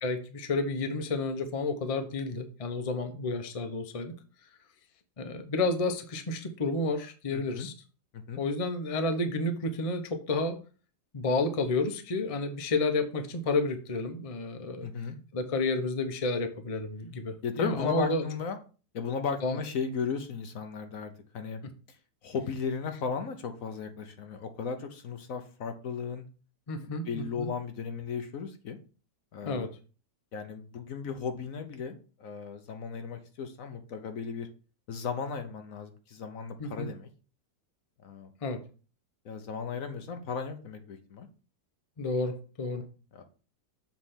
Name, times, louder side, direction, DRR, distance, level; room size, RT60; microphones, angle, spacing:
voice 1, 0.0-4.1 5.2-7.7 8.4-10.6 11.1-14.9 15.3-18.3 19.4-19.6 26.7-27.5 29.4-29.7 36.6-36.9 38.4-38.6 42.0-42.8, left 2 dB, 45° left, 6 dB, 0.4 m, -31 dB
voice 2, 7.3-7.7 8.1-8.4 14.8-15.2 17.4-18.6 18.9-21.6 22.2-26.2 26.8-28.8 29.3-29.7 30.3-34.5 34.9-37.1 38.0-38.3 39.2-41.3 43.1-43.2, left 6 dB, 60° left, 7 dB, 1.0 m, -35 dB
7.1 x 3.3 x 5.6 m, 0.37 s
omnidirectional pair, 1.9 m